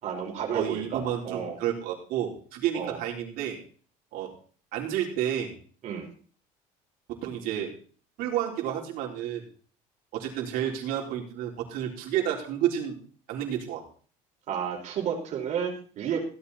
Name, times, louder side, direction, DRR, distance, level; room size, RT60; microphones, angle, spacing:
voice 1, 0.0-1.6 2.7-3.0 5.8-6.1 14.5-16.3, right 7 dB, 50° right, 0 dB, 4.9 m, -31 dB
voice 2, 0.5-3.6 4.1-4.3 4.7-5.5 7.1-7.7 8.2-9.4 10.1-13.0 13.3-13.9, right 10 dB, 75° right, 0 dB, 4.0 m, -30 dB
16.5 x 12.0 x 4.2 m, 0.43 s
cardioid pair, 140°, 15 cm